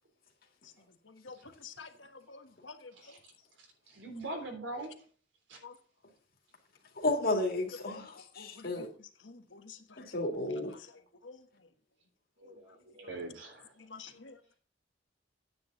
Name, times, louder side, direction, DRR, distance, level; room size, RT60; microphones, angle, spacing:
voice 1, 0.6-3.2 5.6-5.8 7.9-10.0 10.7-11.7 12.4-12.5 13.0-13.2 13.8-14.6, left 4 dB, 70° left, 1.4 m, -51 dB
voice 2, 3.6-4.9 5.5-5.6 12.4-13.7, right 2 dB, 75° right, 3.4 m, -42 dB
voice 3, 7.0-8.9 10.0-10.7, left 2 dB, 55° left, 2.4 m, -32 dB
9.5 x 9.2 x 4.0 m
head